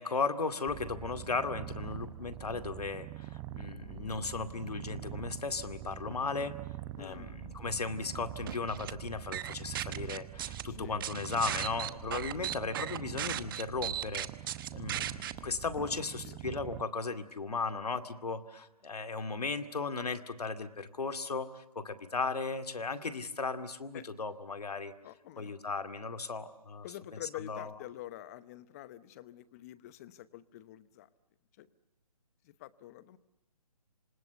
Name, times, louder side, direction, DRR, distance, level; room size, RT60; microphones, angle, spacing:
voice 1, 0.0-6.5 6.9-14.3 14.7-24.9 25.4-26.9 27.4-27.7, left 4 dB, 75° left, 9 dB, 2.3 m, -36 dB
Purr, 0.7-16.8, right 13 dB, 15° right, 0.8 m, -44 dB
voice 2, 7.0-7.4 7.7-7.8 10.7-11.1 16.2-16.6 23.9-24.1 25.0-25.5 26.8-31.1 31.6-31.7 32.4-33.2, left 14 dB, 25° left, 16 dB, 0.9 m, -47 dB
sound 1, 8.5-8.9 9.3-10.6 11.0-15.3, right 11 dB, 35° right, 1.1 m, -36 dB
28.0 x 26.5 x 6.9 m, 0.97 s
hypercardioid pair, 150°, 20 cm